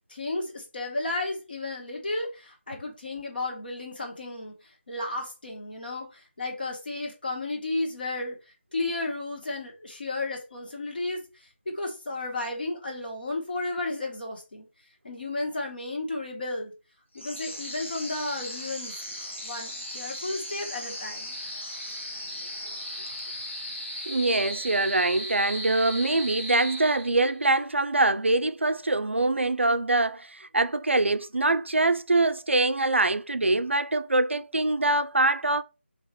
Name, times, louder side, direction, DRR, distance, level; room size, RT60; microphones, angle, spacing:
voice 1, 0.0-14.7 15.0-16.7 17.1-18.9 19.4-21.4, left 2 dB, 50° left, 1.4 m, -33 dB
sound 1, 17.1-27.4, equal, 80° left, 1.3 m, -37 dB
voice 2, 24.1-35.6, right 2 dB, 75° right, 0.4 m, -24 dB
4.0 x 2.9 x 3.1 m
figure-of-eight pair, 160°, 7 cm